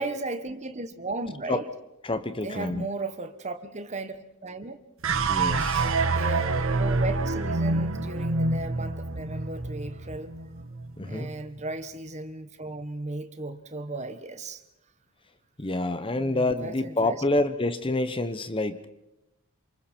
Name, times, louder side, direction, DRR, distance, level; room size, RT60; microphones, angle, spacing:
voice 1, 0.0-1.7 2.4-4.8 5.7-10.3 11.0-14.6 16.1-17.2, right 2 dB, 30° right, 10 dB, 1.3 m, -36 dB
voice 2, 2.0-2.9 5.3-5.9 11.0-11.3 15.6-18.9, left 2 dB, 25° left, 11 dB, 1.0 m, -27 dB
sound 1, 5.0-11.4, right 3 dB, 65° right, 1.5 m, -27 dB
28.5 x 26.5 x 4.5 m, 0.92 s
head